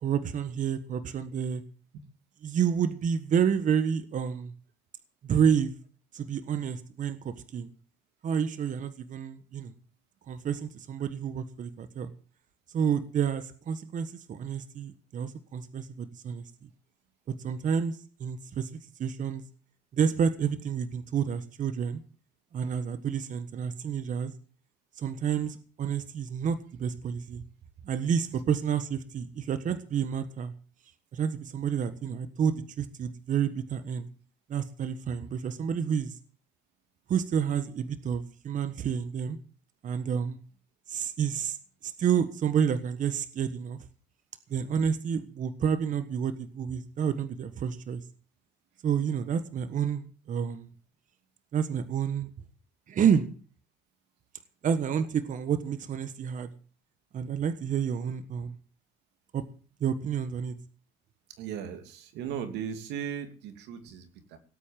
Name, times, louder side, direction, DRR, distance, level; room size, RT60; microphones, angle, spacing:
voice 1, 0.0-1.6 2.4-4.5 5.2-5.7 6.1-7.7 8.2-9.7 10.3-12.1 12.7-16.5 17.4-18.7 19.0-19.4 19.9-22.0 22.5-24.3 24.9-27.4 27.8-30.5 31.1-34.1 34.5-36.2 37.1-39.4 39.8-40.4 40.9-41.6 41.8-43.8 44.5-48.0 48.8-50.7 51.5-52.3 52.9-53.3 54.6-56.5 57.1-58.6 59.3-59.4 59.8-60.5, right 7 dB, 50° right, 12 dB, 1.4 m, -29 dB
voice 2, 61.4-64.4, right 8 dB, 85° right, 8 dB, 2.9 m, -37 dB
18.0 x 8.5 x 7.5 m, 0.40 s
cardioid pair, 110°, 17 cm